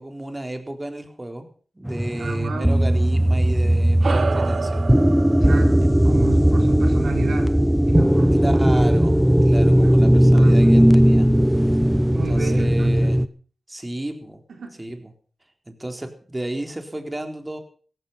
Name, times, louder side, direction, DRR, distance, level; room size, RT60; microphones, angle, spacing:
voice 1, 0.0-1.5 1.7-4.8 5.8-5.9 8.4-11.3 12.3-13.3 13.7-14.4 14.8-15.1 15.7-17.6, right 1 dB, 25° right, 5 dB, 4.1 m, -32 dB
sound 1, 1.9-13.3, equal, 5° right, 1.2 m, -17 dB
voice 2, 2.2-2.8 5.4-7.6 7.9-8.7 9.7-10.0 10.3-10.9 12.1-12.9 14.5-14.8, right 5 dB, 85° right, 4 dB, 4.2 m, -33 dB
sound 2, 4.0-8.8, right 4 dB, 65° right, 2.0 m, -31 dB
16.5 x 14.5 x 5.8 m, 0.44 s
cardioid pair, 50°, 0 cm